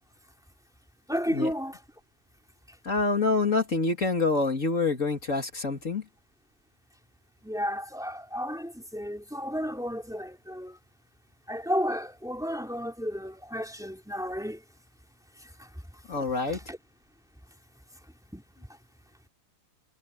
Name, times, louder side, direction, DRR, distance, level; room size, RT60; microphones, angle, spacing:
voice 1, 1.1-1.8 7.4-10.8 11.5-14.6 15.6-15.7 16.7-16.8 18.3-18.4, equal, ahead, 3.1 m, -32 dB
voice 2, 2.8-6.0 16.1-16.6, left 3 dB, 40° left, 2.7 m, -26 dB
omnidirectional pair, 2.1 m